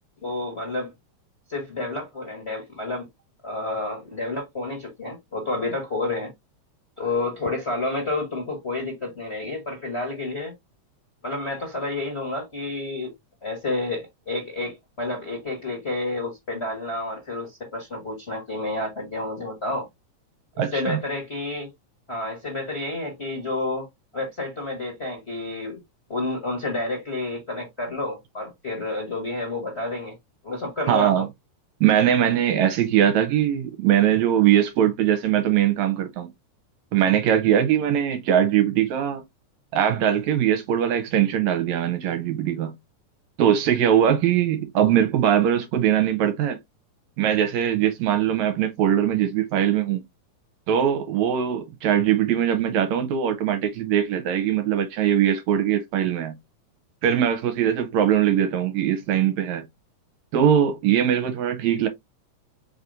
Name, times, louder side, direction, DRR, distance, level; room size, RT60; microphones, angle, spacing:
voice 1, 0.2-0.9 1.5-3.1 3.4-6.3 7.0-10.5 11.2-13.1 13.4-19.9 20.7-21.7 22.1-25.8 26.1-30.1 30.4-31.3, left 2 dB, 35° left, 1.2 m, -30 dB
voice 2, 20.6-21.0 30.9-31.3 31.8-36.3 36.9-39.2 39.7-42.7 43.4-46.6 47.2-50.0 50.7-56.3 57.0-59.6 60.3-61.9, right 10 dB, 75° right, 2.0 m, -21 dB
4.9 x 4.1 x 2.6 m
omnidirectional pair, 3.5 m